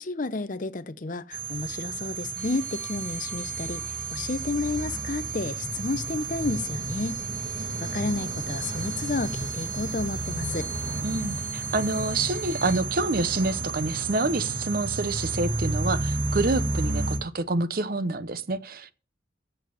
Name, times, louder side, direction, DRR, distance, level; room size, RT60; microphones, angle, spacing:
voice 1, 0.0-10.7, left 3 dB, 45° left, 0.6 m, -31 dB
sound 1, 1.3-17.2, right 3 dB, 65° right, 1.9 m, -32 dB
sound 2, 2.4-12.8, equal, ahead, 3.5 m, -46 dB
voice 2, 11.0-18.9, right 2 dB, 50° right, 0.7 m, -27 dB
7.7 x 7.4 x 7.2 m
head